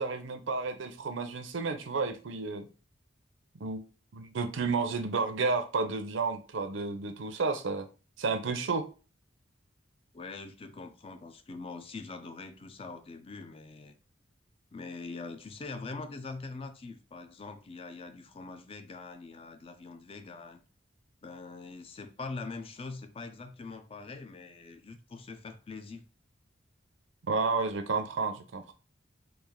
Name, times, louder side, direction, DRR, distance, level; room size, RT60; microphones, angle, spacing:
voice 1, 0.0-2.7 3.6-3.8 4.1-7.9 8.2-8.8 27.3-28.7, right 4 dB, 75° right, 0.5 m, -31 dB
voice 2, 10.1-13.9 14.7-20.6 21.2-26.1, left 3 dB, 30° left, 0.4 m, -43 dB
3.2 x 2.5 x 3.6 m
head